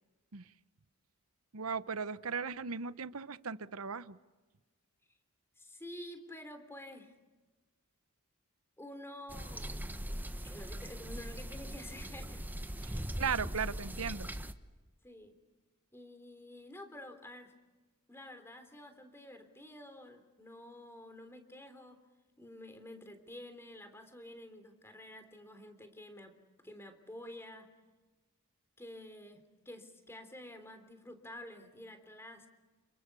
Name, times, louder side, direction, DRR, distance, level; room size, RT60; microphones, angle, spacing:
voice 1, 1.5-4.2 12.8-14.3, right 6 dB, 70° right, 14 dB, 0.9 m, -37 dB
voice 2, 5.6-7.1 8.8-9.8 10.4-12.4 12.8-13.0 15.0-15.4 15.9-17.5 18.1-22.0 22.4-26.3 26.6-27.7 28.8-32.5, left 1 dB, 10° left, 8 dB, 3.5 m, -50 dB
sound 1, 9.3-14.5, equal, 10° right, 1.1 m, -40 dB
29.5 x 28.5 x 7.0 m, 1.2 s
head